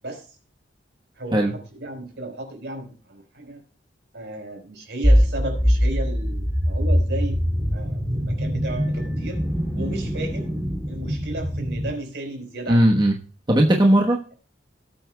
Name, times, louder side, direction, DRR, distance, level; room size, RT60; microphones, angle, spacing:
voice 1, 0.0-0.4 1.1-3.6 4.1-7.4 7.7-9.4 9.7-10.5 10.9-13.0, right 1 dB, 65° right, 2 dB, 4.4 m, -34 dB
sound 1, 5.0-11.9, equal, ahead, 2.5 m, -23 dB
voice 2, 12.7-13.1 13.5-14.2, right 1 dB, 25° right, 0 dB, 1.2 m, -17 dB
19.0 x 8.6 x 2.3 m, 0.40 s
head